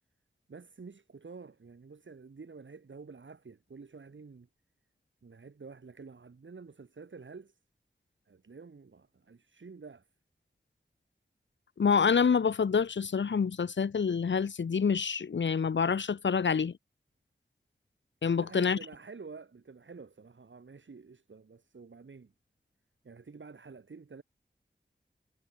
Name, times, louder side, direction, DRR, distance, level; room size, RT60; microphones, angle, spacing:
voice 1, 0.5-4.5 5.2-7.6 8.3-10.1 18.4-22.3 23.0-24.2, right 4 dB, 85° right, 5.5 m, -49 dB
voice 2, 11.8-16.7 18.2-18.8, left 6 dB, 80° left, 0.9 m, -27 dB
cardioid pair, 45°, 19 cm